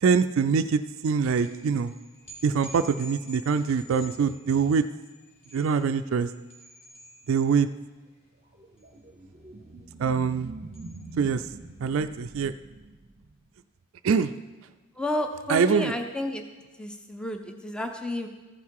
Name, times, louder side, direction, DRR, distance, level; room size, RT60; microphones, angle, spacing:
voice 1, 0.0-1.9 2.4-4.9 5.5-6.3 7.3-7.7 10.0-10.5 11.2-11.4 11.8-12.5 14.0-14.3 15.5-15.9, right 6 dB, 70° right, 11 dB, 0.3 m, -24 dB
sound 1, 1.3-12.0, equal, 30° left, 1.9 m, -50 dB
sound 2, 8.5-13.5, right 2 dB, 35° right, 0.7 m, -44 dB
voice 2, 15.0-16.4 16.8-18.3, left 1 dB, 5° left, 5 dB, 0.5 m, -31 dB
14.0 x 5.6 x 4.7 m, 1.2 s
head